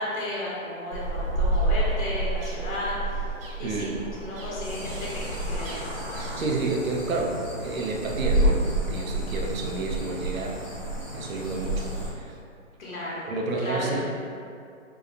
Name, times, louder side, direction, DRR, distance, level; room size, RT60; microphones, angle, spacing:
voice 1, 0.0-3.3 3.6-3.9 4.2-5.9 9.3-9.4 12.8-13.3 13.6-14.0, left 1 dB, 85° left, -7 dB, 1.0 m, -33 dB
sound 1, 0.9-6.4, right 2 dB, 45° right, 0.5 m, -29 dB
voice 2, 3.6-4.0 6.4-10.6 11.1-11.9 12.2-12.4 13.3-14.0, right 3 dB, 90° right, 1 dB, 0.7 m, -30 dB
sound 2, 4.6-12.1, right 1 dB, ahead, 0.6 m, -30 dB
4.8 x 2.1 x 2.5 m, 2.3 s
hypercardioid pair, 155°, 40 cm